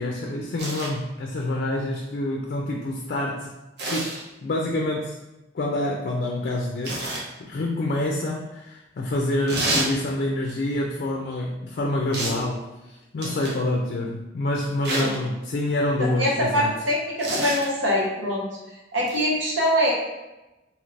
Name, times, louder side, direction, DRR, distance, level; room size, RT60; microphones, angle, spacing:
voice 1, 0.0-3.5 3.9-5.2 5.5-7.1 7.4-16.8, left 1 dB, 50° left, 0 dB, 0.3 m, -27 dB
sound 1, 0.6-0.9 3.8-4.2 6.8-7.3 9.5-9.9 12.1-12.4 13.2-13.6 14.8-15.2 17.2-17.7 19.1-19.2, right 2 dB, 60° right, 0.7 m, -28 dB
voice 2, 16.0-18.4 18.9-19.9, equal, 80° right, -3 dB, 1.0 m, -23 dB
2.8 x 2.5 x 3.2 m, 1.0 s
head